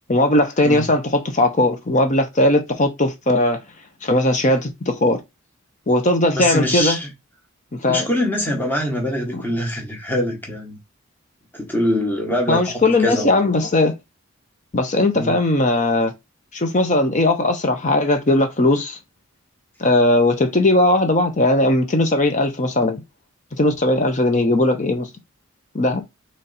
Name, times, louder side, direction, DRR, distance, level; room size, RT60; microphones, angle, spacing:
voice 1, 0.1-3.6 4.0-5.2 5.9-7.0 7.7-8.1 9.3-9.4 12.5-13.9 14.7-16.1 16.5-19.0 19.8-23.0 23.6-25.1 25.7-26.0, left 1 dB, 35° left, 0.7 m, -18 dB
voice 2, 6.4-7.1 7.9-10.8 11.5-13.3 15.1-15.4, equal, 10° left, 1.1 m, -23 dB
4.0 x 3.2 x 4.0 m
head